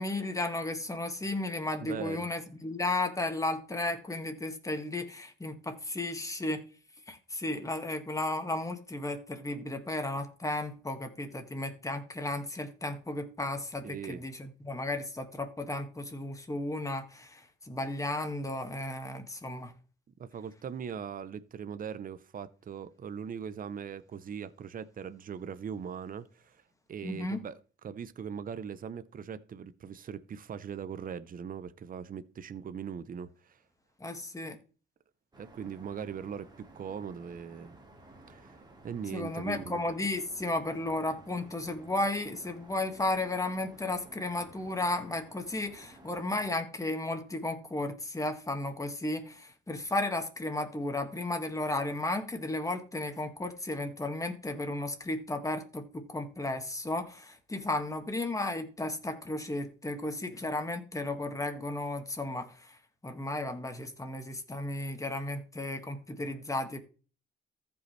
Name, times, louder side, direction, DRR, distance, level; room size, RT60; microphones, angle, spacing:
voice 1, 0.0-6.6 7.1-19.7 27.0-27.4 34.0-34.6 39.1-62.8 63.0-66.8, left 2 dB, 15° left, 1.9 m, -34 dB
voice 2, 1.8-2.3 13.8-14.2 20.2-26.6 26.9-33.6 35.4-37.8 38.3-39.8, right 7 dB, 45° right, 0.8 m, -40 dB
sound 1, 35.3-46.5, right 2 dB, 20° right, 2.3 m, -55 dB
14.5 x 5.5 x 3.3 m
cardioid pair, 90°, 20 cm